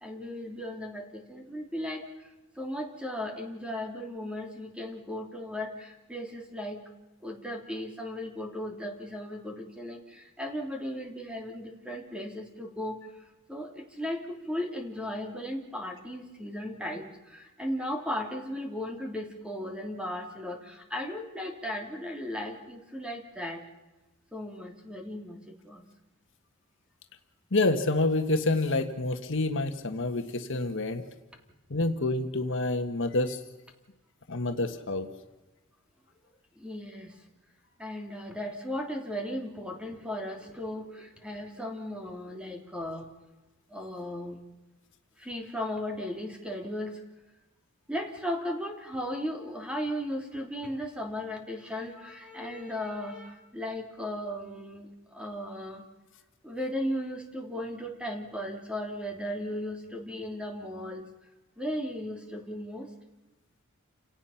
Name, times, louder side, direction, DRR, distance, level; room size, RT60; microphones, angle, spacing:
voice 1, 0.0-2.0 2.6-6.8 7.2-13.0 13.5-23.6 24.3-25.8 36.6-37.1 37.8-43.0 43.7-44.4 45.2-46.9 47.9-54.9 55.1-55.8 56.4-61.0 61.6-62.9, left 1 dB, 5° right, 2 dB, 3.2 m, -36 dB
voice 2, 27.5-31.0 31.7-33.4 34.3-35.1, left 2 dB, 60° left, 6 dB, 1.5 m, -28 dB
29.5 x 18.0 x 5.9 m, 1.1 s
head